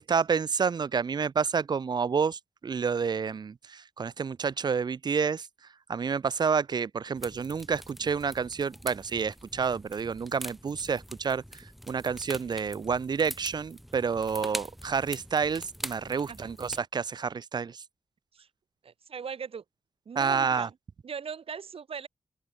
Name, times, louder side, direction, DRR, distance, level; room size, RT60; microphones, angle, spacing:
voice 1, 0.0-5.5 5.9-17.8 20.2-20.7, right 6 dB, 45° right, 0.5 m, -29 dB
sound 1, 7.1-16.8, equal, ahead, 2.0 m, -43 dB
voice 2, 18.8-19.6 20.1-20.8 21.0-22.1, right 6 dB, 65° right, 2.1 m, -39 dB
open air
wide cardioid pair, 150°, 10 cm